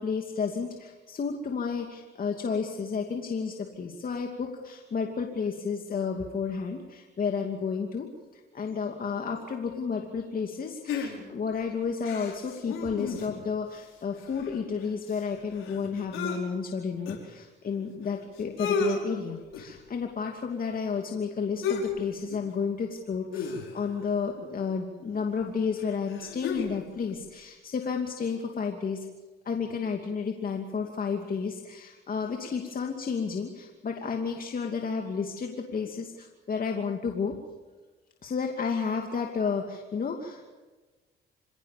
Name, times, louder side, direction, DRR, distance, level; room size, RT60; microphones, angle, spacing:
voice 1, 0.0-29.1 29.4-37.4 38.2-40.5, left 5 dB, 45° left, 3 dB, 2.6 m, -32 dB
sound 1, 10.9-11.5 12.0-13.5 13.8-13.9 14.1-16.4 17.1-17.2 18.0-18.1 18.4-19.0 19.5-19.8 21.6-22.0 22.3-22.5 23.3-24.0 25.1-25.2 25.8-26.8 27.1-27.2, left 5 dB, 85° left, 4.8 m, -33 dB
26.5 x 17.5 x 7.3 m, 1.2 s
cardioid pair, 90°, 20 cm